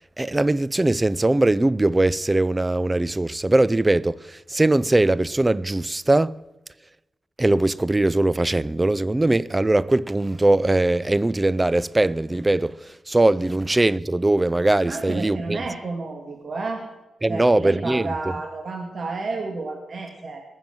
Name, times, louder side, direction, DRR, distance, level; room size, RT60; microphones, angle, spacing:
voice 1, 0.2-6.3 7.4-15.6 17.2-18.1, right 2 dB, 20° right, 0.5 m, -21 dB
voice 2, 14.8-16.8 17.3-20.4, right 3 dB, 50° right, 2.4 m, -31 dB
20.5 x 7.3 x 7.8 m
cardioid pair, 90°, 0 cm